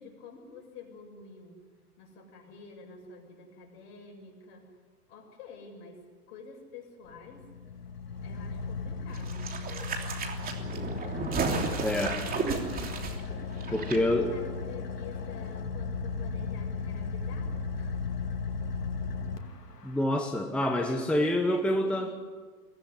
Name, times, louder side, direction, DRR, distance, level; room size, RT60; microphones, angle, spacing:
voice 1, 0.0-1.6 2.0-4.7 5.1-6.0 6.3-7.5 8.2-9.6 13.6-17.9 19.0-19.5 20.6-22.3, left 4 dB, 45° left, 2 dB, 7.3 m, -48 dB
Car / Idling, 7.1-20.0, left 4 dB, 85° left, 2.3 m, -36 dB
sound 1, 9.1-14.0 14.3-14.4, right 4 dB, 20° right, 3.2 m, -33 dB
voice 2, 11.8-12.2 13.7-14.4 19.8-22.1, left 1 dB, ahead, 4 dB, 1.2 m, -27 dB
23.5 x 16.5 x 9.7 m, 1.5 s
hypercardioid pair, 115°, 47 cm